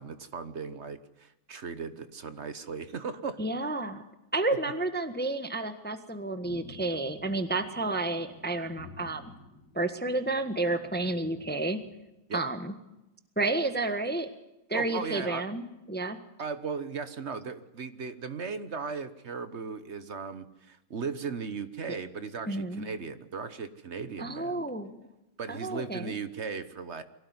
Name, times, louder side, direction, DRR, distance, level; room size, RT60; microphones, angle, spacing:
voice 1, 0.0-3.4 12.3-12.4 14.7-15.5 16.4-24.6 25.4-27.0, right 5 dB, 40° right, 12 dB, 1.0 m, -37 dB
voice 2, 3.4-4.0 4.3-9.3 9.7-11.8 12.3-12.7 13.4-14.3 14.7-16.2 22.5-22.8 24.2-25.0 25.5-26.2, right 2 dB, 5° left, 9 dB, 1.1 m, -31 dB
sound 1, 6.4-11.9, left 3 dB, 50° left, 3.1 m, -51 dB
23.5 x 17.0 x 9.6 m, 0.92 s
omnidirectional pair, 2.4 m